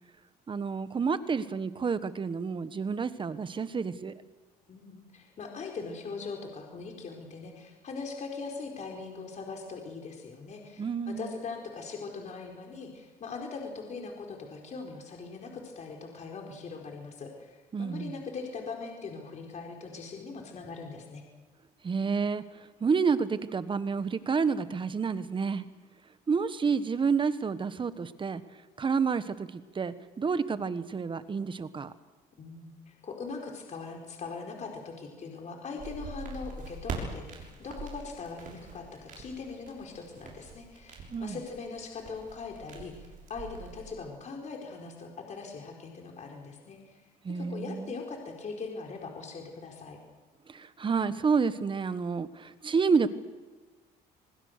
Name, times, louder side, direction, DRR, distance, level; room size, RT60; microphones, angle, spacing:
voice 1, 0.5-4.1 10.8-11.4 17.7-18.2 21.8-25.6 26.3-28.4 28.8-31.9 41.1-41.4 47.2-48.0 50.5-53.1, right 5 dB, 30° right, 13 dB, 1.3 m, -29 dB
voice 2, 4.7-21.2 32.4-47.0 47.3-50.0, left 4 dB, 45° left, 1 dB, 4.5 m, -41 dB
sound 1, 35.8-43.9, right 3 dB, 50° right, 6.6 m, -43 dB
27.0 x 21.0 x 6.7 m, 1.3 s
cardioid pair, 110°, 17 cm